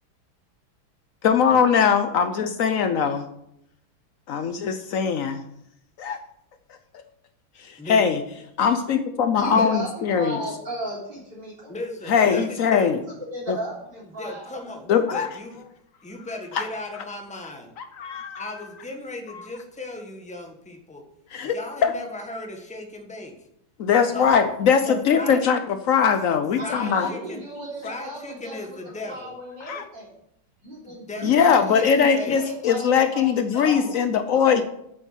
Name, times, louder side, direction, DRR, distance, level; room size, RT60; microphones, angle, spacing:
voice 1, 1.2-3.3 4.3-5.4 6.0-6.2 7.6-8.2 8.6-10.4 12.1-13.0 13.5-13.6 14.9-15.3 16.5-16.7 18.0-18.5 19.3-19.4 21.3-21.5 21.8-21.9 23.8-27.1 29.7-29.8 31.2-34.6, left 7 dB, 85° left, 8 dB, 0.7 m, -21 dB
voice 2, 9.3-11.7 13.3-14.5 26.6-28.8 29.0-30.1 30.6-33.9, right 1 dB, 55° right, -5 dB, 4.0 m, -35 dB
voice 3, 11.7-12.9 14.0-15.6 16.0-17.7 18.4-21.0 21.5-23.5 24.1-24.3 24.8-25.4 26.6-27.4 27.8-29.3 30.8-32.4, left 2 dB, 5° left, 3 dB, 1.2 m, -36 dB
8.3 x 8.1 x 7.3 m, 0.77 s
omnidirectional pair, 2.3 m